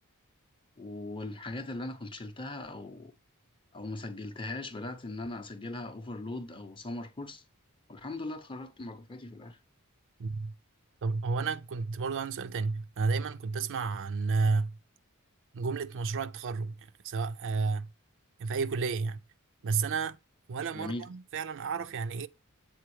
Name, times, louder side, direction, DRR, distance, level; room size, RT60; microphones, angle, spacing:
voice 1, 0.8-3.1 3.7-7.4 7.9-9.6 20.7-21.1, left 2 dB, 25° left, 0.7 m, -39 dB
voice 2, 10.2-10.5 11.0-14.8 15.5-17.9 18.4-19.2 19.6-20.2 20.5-22.3, right 4 dB, 60° right, 0.5 m, -31 dB
7.9 x 3.8 x 3.2 m
head